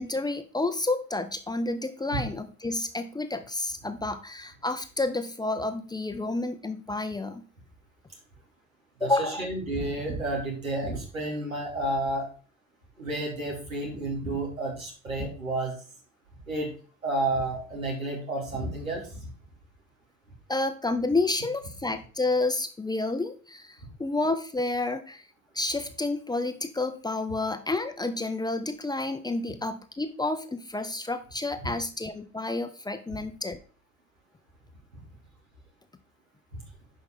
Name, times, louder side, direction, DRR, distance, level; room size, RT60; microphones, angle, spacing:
voice 1, 0.0-7.4 9.0-9.5 20.5-25.2 25.5-33.6, left 2 dB, 10° left, 9 dB, 0.8 m, -30 dB
voice 2, 9.0-12.3 13.0-15.7 16.5-16.7 17.0-19.3 34.9-35.1, right 2 dB, 85° right, -1 dB, 3.1 m, -31 dB
10.5 x 5.6 x 3.8 m, 0.40 s
figure-of-eight pair, 65°, 40 cm